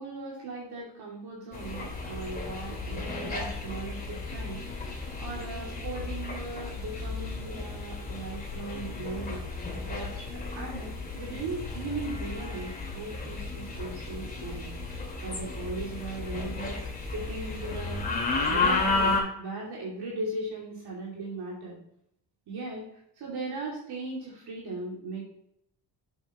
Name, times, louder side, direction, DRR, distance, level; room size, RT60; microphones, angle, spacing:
voice 1, 0.0-9.4 9.8-16.8 17.1-18.0 18.5-21.8 22.5-22.8 23.2-25.2, right 2 dB, 65° right, -4 dB, 2.8 m, -38 dB
sound 1, 1.5-19.2, left 3 dB, 20° left, 2.2 m, -33 dB
8.0 x 6.8 x 3.0 m, 0.74 s
cardioid pair, 150°, 41 cm